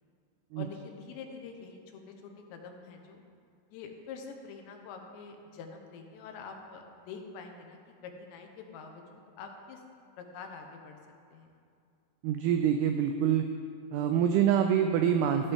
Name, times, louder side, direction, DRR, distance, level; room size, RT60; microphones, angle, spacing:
voice 1, 0.6-3.2 3.7-9.8 10.2-11.0 11.3-11.6, left 5 dB, 80° left, 3 dB, 3.1 m, -46 dB
voice 2, 12.2-13.5 13.9-15.5, right 9 dB, 85° right, 6 dB, 2.3 m, -26 dB
14.5 x 11.0 x 3.5 m, 2.4 s
omnidirectional pair, 5.2 m